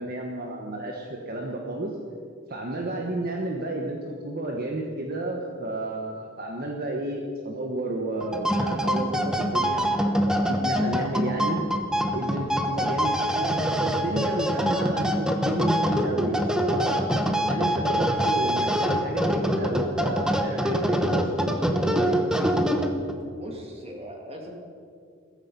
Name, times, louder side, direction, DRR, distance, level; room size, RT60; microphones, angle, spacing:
voice 1, 0.0-1.9 2.5-11.6 12.1-17.1 17.5-22.2, right 1 dB, 50° right, 0 dB, 1.4 m, -31 dB
sound 1, 8.2-23.2, equal, 5° right, 1.1 m, -25 dB
voice 2, 23.3-24.5, equal, 30° right, 2 dB, 2.4 m, -40 dB
16.5 x 15.0 x 5.5 m, 2.3 s
head